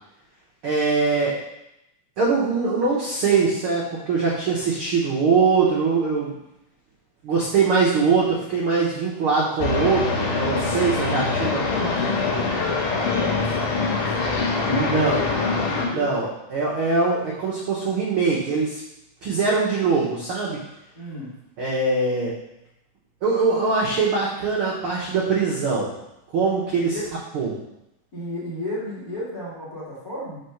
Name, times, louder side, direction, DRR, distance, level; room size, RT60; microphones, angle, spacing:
voice 1, 0.6-1.4 2.2-6.3 7.2-11.6 14.6-15.2 15.7-18.8 19.2-20.6 21.6-22.3 23.2-25.9 26.3-26.9 27.3-27.5, right 4 dB, 80° right, -6 dB, 1.2 m, -22 dB
sound 1, 9.6-15.9, left 4 dB, 75° left, 2.5 m, -24 dB
voice 2, 11.7-14.4 14.7-16.2 20.9-21.3 26.9-27.1 28.1-30.4, equal, 35° left, -8 dB, 1.8 m, -33 dB
5.2 x 3.9 x 5.6 m, 0.84 s
omnidirectional pair, 3.9 m